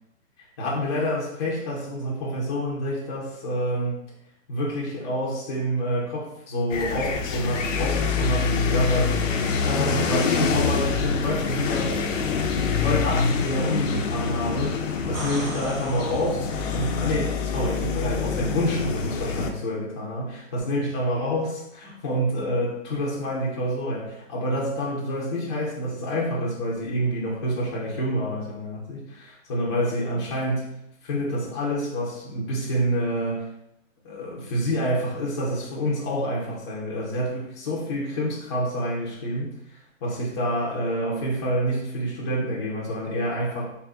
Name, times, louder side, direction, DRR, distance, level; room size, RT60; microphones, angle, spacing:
voice 1, 0.6-4.0 4.5-9.2 9.6-12.0 12.7-14.8 15.1-16.4 16.7-30.7 31.0-33.5 34.0-43.6, equal, 20° left, -5 dB, 0.6 m, -27 dB
sound 1, 6.7-19.5, left 5 dB, 65° left, 0.6 m, -26 dB
sound 2, 15.1-16.9 20.6-20.7, right 2 dB, 75° right, 1.4 m, -38 dB
3.5 x 2.2 x 3.6 m, 0.81 s
hypercardioid pair, 155°, 40 cm